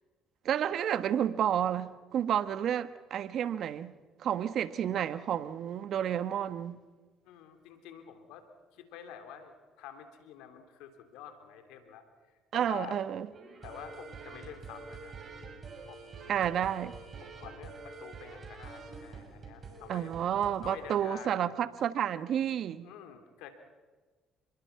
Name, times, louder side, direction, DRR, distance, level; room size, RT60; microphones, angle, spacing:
voice 1, 0.4-3.9 4.2-6.8 12.5-13.3 16.3-16.9 19.9-22.9, right 9 dB, 60° right, 1.2 m, -30 dB
voice 2, 7.2-8.4 8.7-13.0 13.6-15.2 15.8-16.5 17.2-20.1 20.6-21.5 22.8-23.5, left 9 dB, 80° left, 3.2 m, -48 dB
sound 1, 13.3-20.7, right 4 dB, 45° right, 6.8 m, -47 dB
28.5 x 21.5 x 5.9 m
hypercardioid pair, 60°, 0 cm